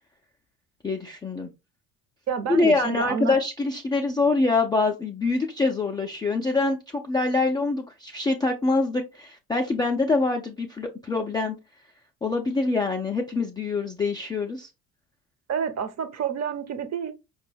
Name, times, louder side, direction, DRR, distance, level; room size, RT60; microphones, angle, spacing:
voice 1, 0.8-1.5 2.5-11.6 12.2-14.7, left 3 dB, 10° left, 0.3 m, -25 dB
voice 2, 2.3-3.3 15.5-17.1, right 7 dB, 35° right, 0.7 m, -28 dB
5.0 x 2.3 x 3.2 m
figure-of-eight pair, 55°, 46 cm